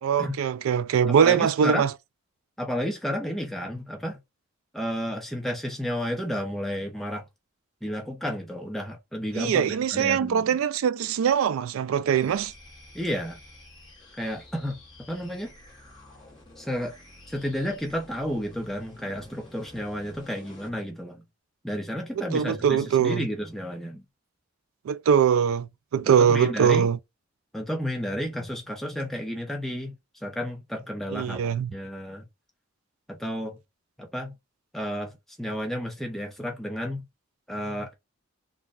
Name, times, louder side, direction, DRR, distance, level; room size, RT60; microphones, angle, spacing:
voice 1, 0.0-1.9 9.3-12.5 22.2-23.3 24.9-27.0 31.1-31.7, right 7 dB, 80° right, 0.3 m, -22 dB
voice 2, 1.1-1.9 2.6-4.2 4.7-7.2 7.8-10.6 12.9-13.4 14.2-15.5 16.6-16.9 17.3-21.2 21.6-24.0 26.2-26.9 27.5-29.9 30.2-32.3 33.1-33.6 34.0-34.3 34.7-35.1 35.4-37.0 37.5-37.9, equal, ahead, 0.6 m, -32 dB
sound 1, 12.1-20.8, left 1 dB, 20° left, 1.2 m, -50 dB
3.8 x 2.2 x 2.4 m
head